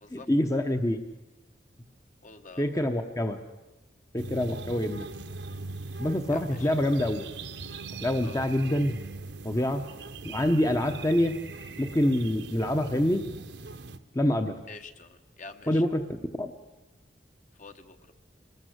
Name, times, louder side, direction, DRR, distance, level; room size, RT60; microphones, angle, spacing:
voice 1, 0.1-1.0 2.6-3.4 4.1-5.1 6.0-7.3 8.0-9.0 9.4-9.8 10.2-11.4 11.8-13.2 14.1-14.6 15.7-16.0 16.4-16.5, left 1 dB, 20° left, 7 dB, 1.0 m, -26 dB
voice 2, 2.2-2.9 6.3-6.7 8.2-8.5 14.7-15.8 17.6-18.1, left 4 dB, 45° left, 7 dB, 1.4 m, -47 dB
sound 1, 4.2-14.0, right 3 dB, 70° right, 1.2 m, -41 dB
25.0 x 20.0 x 8.0 m, 1.1 s
head